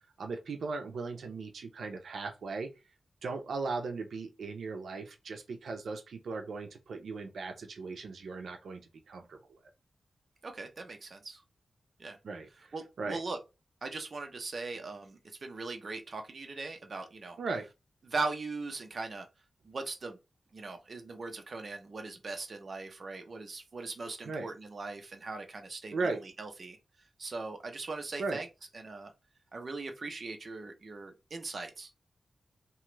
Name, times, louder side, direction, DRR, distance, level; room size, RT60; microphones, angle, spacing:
voice 1, 0.2-2.7 3.2-8.8 9.1-9.4 12.2-13.2 17.4-17.7 24.2-24.5 25.9-26.2 28.2-28.4, right 4 dB, 85° right, 0.5 m, -37 dB
voice 2, 10.4-11.4 12.0-12.2 12.7-13.4 13.8-17.4 18.1-19.3 19.6-20.2 20.5-26.8 27.2-28.5 28.7-29.1 29.5-31.9, right 3 dB, 45° right, 0.6 m, -40 dB
2.9 x 2.3 x 3.1 m
wide cardioid pair, 150°, 0 cm